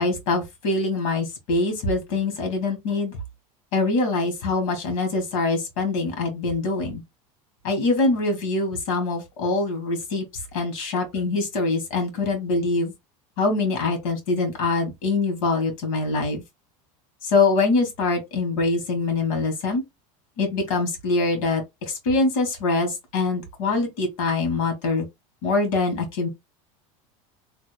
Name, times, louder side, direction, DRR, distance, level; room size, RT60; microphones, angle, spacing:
voice 1, 0.0-3.1 3.7-7.0 7.6-10.3 10.5-12.9 13.4-16.4 17.2-19.8 20.4-25.0 25.4-26.3, left 3 dB, 75° left, 1.8 m, -24 dB
3.1 x 2.1 x 3.3 m
supercardioid pair, 115°, 17 cm